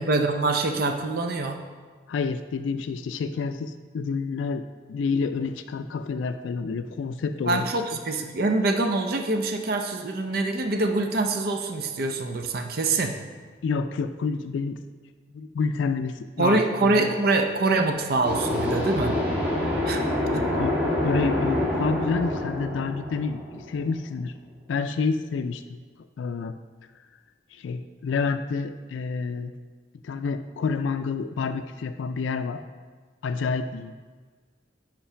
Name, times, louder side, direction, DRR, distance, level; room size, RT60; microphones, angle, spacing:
voice 1, 0.0-1.6 7.5-13.1 16.4-19.2 19.8-20.0, right 2 dB, 55° right, 5 dB, 0.5 m, -24 dB
voice 2, 2.1-4.6 4.9-7.7 13.6-14.8 15.3-17.1 20.3-24.3 24.7-25.6 26.2-26.5 27.5-29.5 30.0-32.6 33.2-33.9, left 5 dB, 85° left, 10 dB, 0.3 m, -28 dB
sound 1, 18.2-23.9, left 1 dB, 10° right, 1.2 m, -26 dB
5.7 x 5.2 x 5.6 m, 1.5 s
head